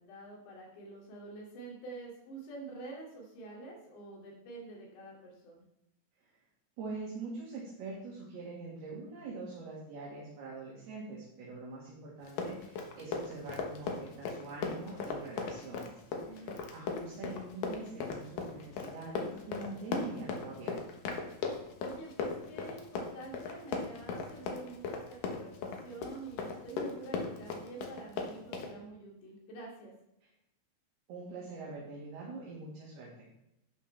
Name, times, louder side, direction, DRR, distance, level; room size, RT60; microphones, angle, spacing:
voice 1, 0.0-5.6 16.2-16.6 21.8-29.9, right 3 dB, 65° left, -3 dB, 4.7 m, -47 dB
voice 2, 6.8-15.9 16.2-20.7 31.1-33.3, right 3 dB, 60° right, -5 dB, 3.4 m, -44 dB
Run, 12.2-28.7, left 4 dB, 80° left, 1.9 m, -37 dB
11.0 x 9.5 x 3.3 m, 0.84 s
omnidirectional pair, 5.8 m